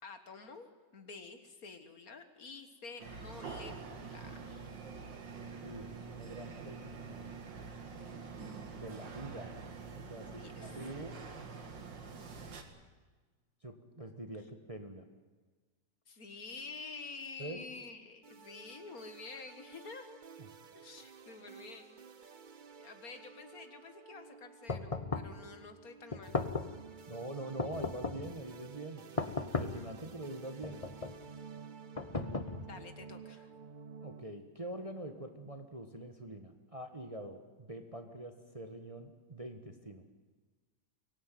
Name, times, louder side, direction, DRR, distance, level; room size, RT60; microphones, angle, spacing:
voice 1, 0.0-4.7 10.2-10.9 12.1-12.2 14.4-14.5 16.1-20.2 20.7-22.4 22.8-26.4 32.6-33.5, left 4 dB, 55° left, 8 dB, 2.0 m, -49 dB
sound 1, 3.0-12.6, right 5 dB, 85° right, 2.6 m, -46 dB
voice 2, 5.6-7.3 8.8-9.6 10.1-11.2 13.6-15.0 17.4-17.6 27.1-29.0 29.4-30.8 34.0-40.0, right 1 dB, 20° right, 6 dB, 1.4 m, -45 dB
Aetera loop, 18.2-34.2, right 5 dB, 50° right, 0.5 m, -52 dB
sound 2, 24.7-25.4 26.1-26.8 27.6-28.3 29.2-29.9 30.6-31.2 32.0-32.8, left 3 dB, 25° left, 0.9 m, -36 dB
24.0 x 17.5 x 9.3 m, 1.4 s
omnidirectional pair, 1.9 m